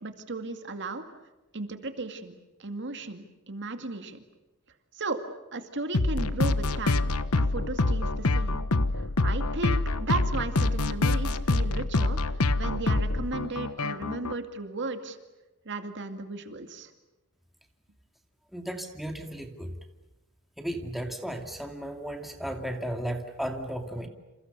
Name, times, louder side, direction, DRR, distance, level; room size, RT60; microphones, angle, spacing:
voice 1, 0.0-1.0 1.5-2.3 2.6-4.2 4.9-5.2 5.5-8.6 8.9-15.2 15.7-16.9, right 3 dB, 55° right, 7 dB, 2.2 m, -35 dB
sound 1, 5.9-14.3, left 2 dB, 75° left, 1.2 m, -26 dB
voice 2, 18.5-19.7 20.6-24.1, equal, ahead, 3 dB, 2.5 m, -34 dB
29.0 x 28.0 x 6.8 m, 1.1 s
head